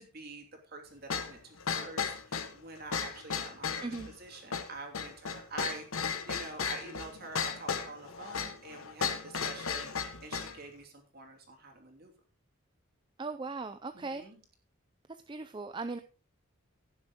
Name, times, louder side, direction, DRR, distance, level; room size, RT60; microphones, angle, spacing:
voice 1, 0.0-12.1 13.9-14.4, right 3 dB, 45° right, 2 dB, 3.2 m, -46 dB
sound 1, 1.1-10.6, left 6 dB, 85° left, 1.4 m, -35 dB
voice 2, 13.2-14.3 15.3-16.0, right 3 dB, 20° right, 9 dB, 0.4 m, -38 dB
17.0 x 7.2 x 3.6 m, 0.37 s
head